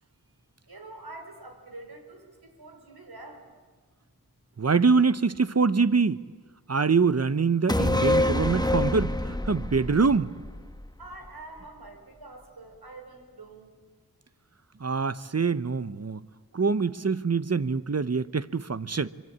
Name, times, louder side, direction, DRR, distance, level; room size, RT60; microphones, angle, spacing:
voice 1, 0.7-2.3 2.6-3.5 11.0-13.8, right 2 dB, 90° right, 4 dB, 4.5 m, -45 dB
voice 2, 4.6-6.2 6.7-10.3 14.8-16.2 16.5-19.1, right 4 dB, 45° right, 14 dB, 0.9 m, -24 dB
sound 1, 7.7-11.3 11.6-11.7, left 1 dB, 10° left, 1.0 m, -27 dB
25.0 x 24.5 x 8.8 m, 1.4 s
wide cardioid pair, 50°, 37 cm